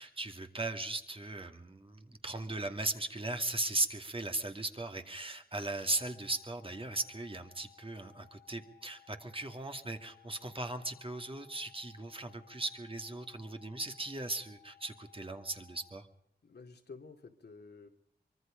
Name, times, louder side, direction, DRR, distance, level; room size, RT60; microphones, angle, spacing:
voice 1, 0.0-16.1, right 2 dB, 30° right, 5 dB, 2.4 m, -38 dB
sound 1, 5.9-15.9, left 13 dB, 80° right, 4.6 m, -62 dB
voice 2, 16.4-17.9, left 4 dB, 80° left, 5 dB, 2.5 m, -51 dB
24.5 x 24.0 x 5.2 m, 0.71 s
wide cardioid pair, 95°, 17 cm